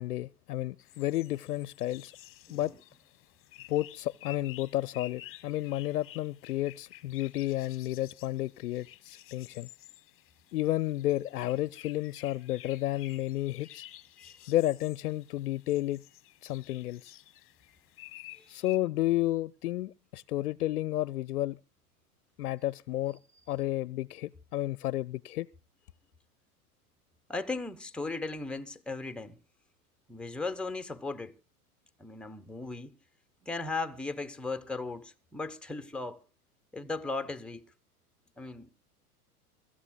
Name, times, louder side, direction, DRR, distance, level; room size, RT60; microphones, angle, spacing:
voice 1, 0.0-2.1 2.5-2.7 3.7-9.7 10.5-13.9 14.5-16.0 16.4-17.2 18.5-21.6 22.4-23.2 23.5-25.5, left 15 dB, 75° left, 0.6 m, -31 dB
sound 1, 0.8-18.8, left 15 dB, 30° left, 1.1 m, -52 dB
voice 2, 27.3-29.4 30.1-31.3 32.0-33.0 33.4-36.2 36.7-37.6 38.4-38.7, left 3 dB, ahead, 0.9 m, -37 dB
24.5 x 14.0 x 2.3 m
hypercardioid pair, 105°, 45 cm